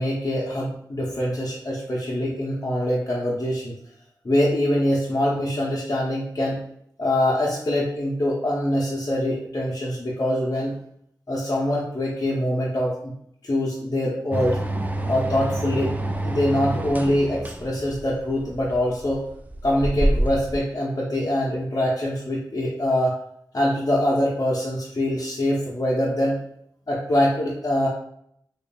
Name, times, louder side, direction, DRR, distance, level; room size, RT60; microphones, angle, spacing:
voice 1, 0.0-3.8 4.2-6.6 7.0-10.7 11.3-13.1 13.4-14.6 15.1-15.9 16.2-19.2 19.6-23.2 23.5-26.4 26.9-27.9, left 1 dB, 50° left, -6 dB, 0.8 m, -24 dB
sound 1, 14.3-20.6, right 1 dB, 20° right, 0.4 m, -27 dB
3.8 x 3.1 x 2.2 m, 0.71 s
cardioid pair, 40°, 8 cm